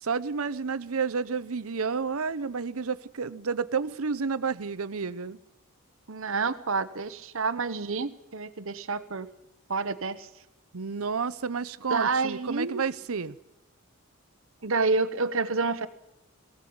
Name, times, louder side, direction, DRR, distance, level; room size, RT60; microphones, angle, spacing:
voice 1, 0.0-5.4 10.7-13.4, right 5 dB, 85° right, 15 dB, 0.8 m, -30 dB
voice 2, 6.1-9.3 9.7-10.3 11.9-12.8 14.6-15.9, right 4 dB, 65° right, 12 dB, 1.0 m, -28 dB
20.0 x 16.5 x 8.7 m, 0.87 s
head